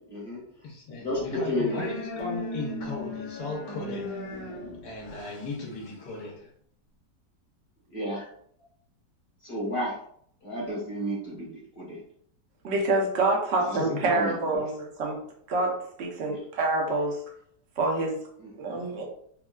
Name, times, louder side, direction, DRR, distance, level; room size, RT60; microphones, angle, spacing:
voice 1, 0.1-0.4 1.0-1.8 7.9-8.2 9.4-9.9 10.4-12.0 13.7-13.8 14.1-14.4 16.2-16.4 18.6-18.9, equal, 40° left, -6 dB, 0.8 m, -31 dB
voice 2, 0.6-4.2 4.8-6.5 13.7-14.0, left 3 dB, 80° left, -2 dB, 1.3 m, -36 dB
sound 1, 1.1-6.3, left 2 dB, 60° left, 1.1 m, -38 dB
voice 3, 12.6-15.2 15.5-17.2 17.8-18.2 18.6-19.0, right 2 dB, 75° right, 0 dB, 0.6 m, -27 dB
3.5 x 2.2 x 2.2 m, 0.64 s
omnidirectional pair, 1.9 m